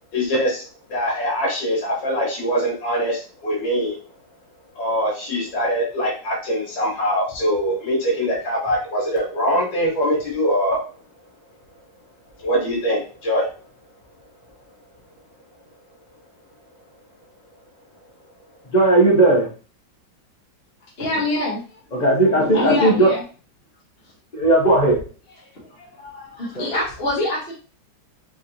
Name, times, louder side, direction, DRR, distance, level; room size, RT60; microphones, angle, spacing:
voice 1, 0.1-0.6 0.9-4.0 4.8-10.8 12.4-13.4, equal, 85° left, -5 dB, 2.1 m, -23 dB
voice 2, 18.7-19.4 21.9-23.1 24.3-25.0 26.6-26.7, right 2 dB, 65° left, -2 dB, 0.4 m, -16 dB
voice 3, 21.0-23.2 25.4-27.5, left 2 dB, 40° left, -4 dB, 1.0 m, -26 dB
4.4 x 3.0 x 2.7 m, 0.37 s
omnidirectional pair, 2.0 m